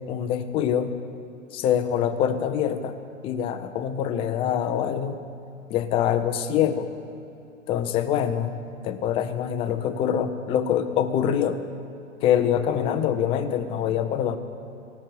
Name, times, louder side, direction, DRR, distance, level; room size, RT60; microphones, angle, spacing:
voice 1, 0.1-0.9 1.5-3.0 3.2-5.2 5.7-6.9 7.7-8.5 8.8-11.6 12.2-14.4, left 9 dB, 15° left, 9 dB, 0.4 m, -24 dB
16.5 x 6.1 x 8.4 m, 2.7 s
figure-of-eight pair, 110°, 39 cm